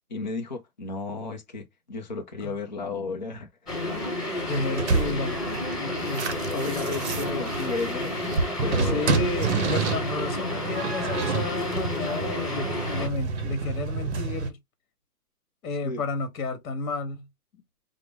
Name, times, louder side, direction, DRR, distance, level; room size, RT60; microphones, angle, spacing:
voice 1, 0.1-3.5 6.5-8.1 8.6-9.1 15.8-16.0, left 3 dB, 30° left, 0.4 m, -33 dB
sound 1, 3.7-13.1, left 1 dB, 10° left, 1.3 m, -31 dB
sound 2, 4.4-14.5, right 4 dB, 45° right, 0.7 m, -29 dB
voice 2, 4.5-6.6 8.8-14.6 15.6-17.3 17.5-17.6, left 3 dB, 65° left, 1.2 m, -32 dB
4.7 x 2.0 x 3.4 m
hypercardioid pair, 170°, 46 cm